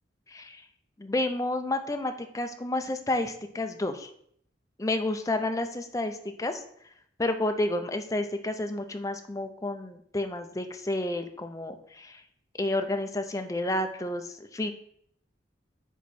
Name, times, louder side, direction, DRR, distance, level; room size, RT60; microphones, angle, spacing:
voice 1, 0.3-0.6 1.0-4.1 4.8-6.6 7.2-12.2 12.6-14.7, left 1 dB, 20° left, 7 dB, 0.5 m, -30 dB
9.1 x 3.0 x 4.2 m, 0.68 s
head